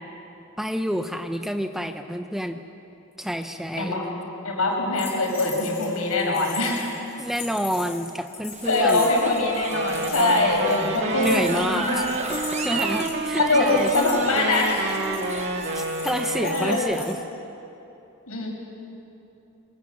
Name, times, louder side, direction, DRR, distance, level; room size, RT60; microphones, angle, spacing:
voice 1, 0.6-2.6 3.2-3.9 7.2-9.1 11.2-13.9 15.7-17.2, equal, ahead, 7 dB, 0.7 m, -28 dB
voice 2, 3.7-4.1 4.4-6.9 8.7-12.1 13.4-15.2 16.4-16.8 18.3-18.5, left 2 dB, 85° left, 0 dB, 5.9 m, -23 dB
sound 1, 4.9-17.1, left 6 dB, 30° left, 4.4 m, -40 dB
sound 2, 8.5-17.1, right 4 dB, 30° right, 1.2 m, -34 dB
Wind instrument woodwind instrument, 9.6-16.8, right 2 dB, 50° right, 1.9 m, -29 dB
27.0 x 22.5 x 7.4 m, 3.0 s
head